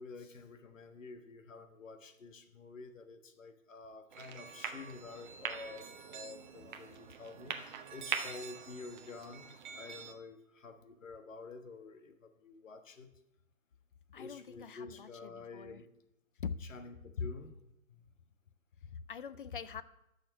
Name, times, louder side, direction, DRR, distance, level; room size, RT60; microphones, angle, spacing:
voice 1, 0.0-9.5 9.7-13.1 14.1-15.8 16.6-17.5 17.9-18.0, left 4 dB, 65° left, 8 dB, 1.4 m, -49 dB
sound 1, 4.1-10.1, right 7 dB, 35° right, 0.8 m, -43 dB
voice 2, 14.1-15.8 16.4-16.6 17.1-17.3 18.8-19.8, left 6 dB, 40° left, 15 dB, 0.4 m, -42 dB
10.5 x 6.5 x 6.0 m, 0.86 s
figure-of-eight pair, 140°, 42 cm